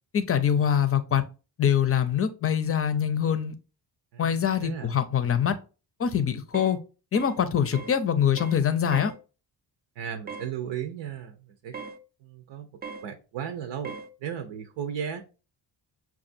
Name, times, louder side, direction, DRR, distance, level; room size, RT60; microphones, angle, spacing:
voice 1, 0.1-1.2 1.6-3.5 4.2-5.6 6.0-6.8 7.1-9.1, left 8 dB, 30° left, 0.5 m, -24 dB
voice 2, 4.1-4.9 10.0-11.8 12.2-12.7 13.0-14.0 14.2-15.2, right 8 dB, 85° right, 0.7 m, -35 dB
sound 1, 6.5-6.8 7.2-7.4 7.7-8.0 8.4-8.6 8.9-9.2 10.3-10.5 11.7-12.0 12.8-13.1 13.8-14.1, right 5 dB, 25° right, 0.4 m, -39 dB
5.8 x 2.4 x 2.5 m
cardioid pair, 95°, 44 cm